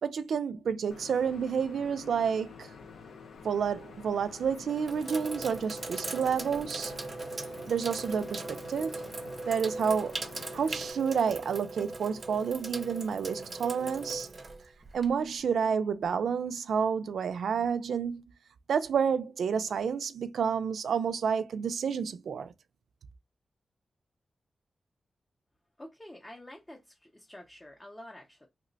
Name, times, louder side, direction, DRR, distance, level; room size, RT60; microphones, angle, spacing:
voice 1, 0.0-2.7 3.4-6.9 7.7-9.0 9.5-14.3 14.9-18.2 18.7-22.5, right 6 dB, 90° right, 0.4 m, -30 dB
sound 1, 0.9-10.9, left 5 dB, 85° left, 0.5 m, -49 dB
Sink (filling or washing), 3.4-3.8 4.4-15.4, right 3 dB, 35° right, 0.5 m, -39 dB
voice 2, 25.8-28.5, left 1 dB, 15° left, 0.5 m, -48 dB
2.9 x 2.1 x 3.9 m
wide cardioid pair, 155°, 0 cm